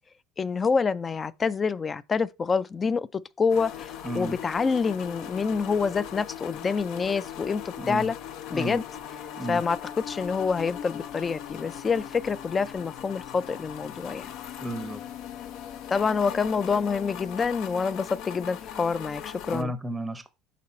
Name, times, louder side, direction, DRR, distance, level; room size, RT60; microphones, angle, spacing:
voice 1, 0.4-8.2 8.5-8.8 9.5-9.8 10.1-14.3 15.9-19.7, left 5 dB, 25° left, 0.3 m, -27 dB
sound 1, 3.5-19.6, left 10 dB, 65° left, 0.6 m, -39 dB
voice 2, 4.0-4.4 7.8-8.1 8.5-8.8 9.4-9.6 14.6-15.0 19.5-20.3, right 1 dB, 10° right, 0.7 m, -32 dB
6.1 x 4.1 x 4.2 m
cardioid pair, 120°, 0 cm